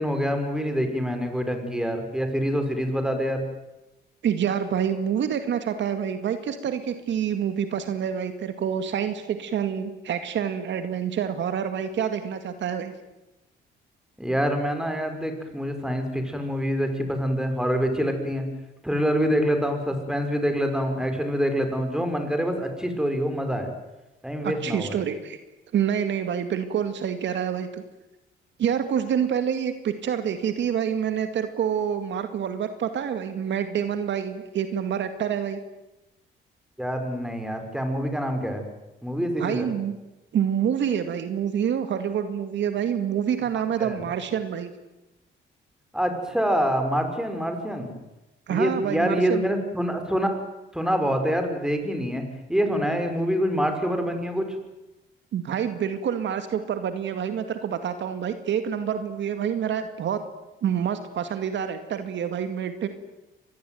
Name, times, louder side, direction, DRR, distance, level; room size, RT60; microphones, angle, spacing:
voice 1, 0.0-3.4 14.2-18.4 18.8-23.7 24.2-25.0 36.8-38.6 39.0-39.7 43.8-44.0 45.9-47.9 48.5-50.3 50.7-52.2 52.5-54.5, equal, 5° right, 6 dB, 5.8 m, -26 dB
voice 2, 4.2-12.9 24.4-25.4 25.7-27.8 28.6-35.6 39.4-39.9 40.3-44.7 48.5-49.5 55.3-60.2 60.6-62.9, right 8 dB, 70° right, 9 dB, 2.2 m, -27 dB
25.5 x 20.5 x 9.5 m, 0.99 s
cardioid pair, 90°, 20 cm